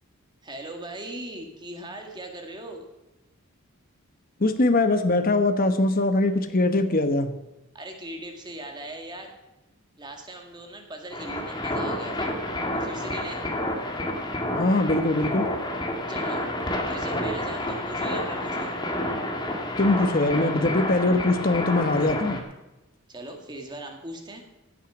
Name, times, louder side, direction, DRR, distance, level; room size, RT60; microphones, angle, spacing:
voice 1, 0.4-2.9 7.7-9.3 10.0-12.3 12.7-13.5 16.1-16.5 16.9-18.8 23.1-24.4, right 1 dB, 20° right, 3 dB, 2.0 m, -39 dB
voice 2, 4.4-7.3 14.5-15.5 19.8-22.4, left 2 dB, 40° left, 8 dB, 1.0 m, -22 dB
sound 1, 11.1-22.4, left 1 dB, 20° left, 2.0 m, -29 dB
16.0 x 8.8 x 6.3 m, 1.0 s
head